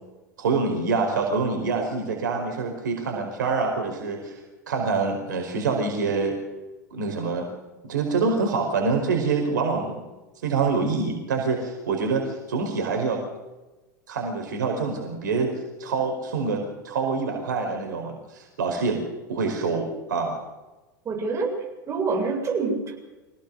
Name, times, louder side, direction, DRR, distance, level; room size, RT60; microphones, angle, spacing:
voice 1, 0.4-4.4 4.7-6.4 6.9-7.5 7.8-10.0 10.4-13.2 14.1-15.5 15.8-19.0 19.3-20.4, right 4 dB, 75° right, 3 dB, 4.9 m, -26 dB
voice 2, 21.0-21.6 21.9-23.0, right 4 dB, 30° right, 1 dB, 7.7 m, -26 dB
25.0 x 18.0 x 7.0 m, 1.1 s
hypercardioid pair, 85°, 10 cm